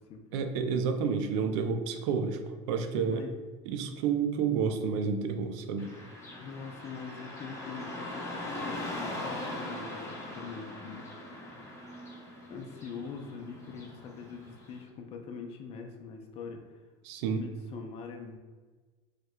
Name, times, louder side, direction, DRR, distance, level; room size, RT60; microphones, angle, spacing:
voice 1, 0.3-2.4 2.7-3.2 3.7-5.9 17.0-17.4, right 6 dB, 70° right, 6 dB, 0.4 m, -30 dB
voice 2, 2.9-3.4 6.4-11.0 12.5-16.8 17.3-18.4, left 5 dB, 40° left, 3 dB, 0.4 m, -43 dB
Car passing by / Traffic noise roadway noise, 5.8-14.8, left 1 dB, 15° left, 0.8 m, -41 dB
4.4 x 2.2 x 2.3 m, 1.3 s
supercardioid pair, 110°, 16 cm